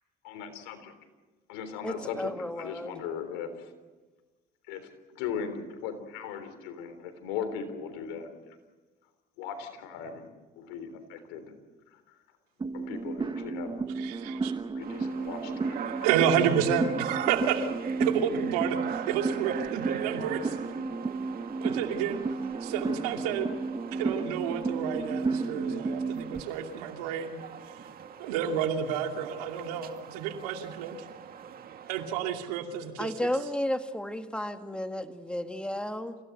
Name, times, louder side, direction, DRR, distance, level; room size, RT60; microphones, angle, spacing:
voice 1, 0.2-0.8 1.5-3.7 4.7-8.6 9.4-10.3 10.6-11.5 11.9-12.2 12.7-13.8 14.7-15.8, left 7 dB, 85° left, 9 dB, 3.7 m, -38 dB
voice 2, 1.8-3.0 33.0-36.2, left 1 dB, 5° left, 7 dB, 2.2 m, -33 dB
sound 1, 12.6-26.4, right 4 dB, 25° right, 1.5 m, -33 dB
voice 3, 14.0-14.5 15.9-17.7 18.0-20.6 21.6-23.5 23.9-27.4 27.7-27.8 28.2-31.0 31.8-33.3, right 8 dB, 90° right, 4 dB, 2.6 m, -30 dB
sound 2, 14.8-32.1, right 8 dB, 50° right, 2.2 m, -42 dB
28.0 x 17.0 x 7.9 m, 1.3 s
supercardioid pair, 75°, 19 cm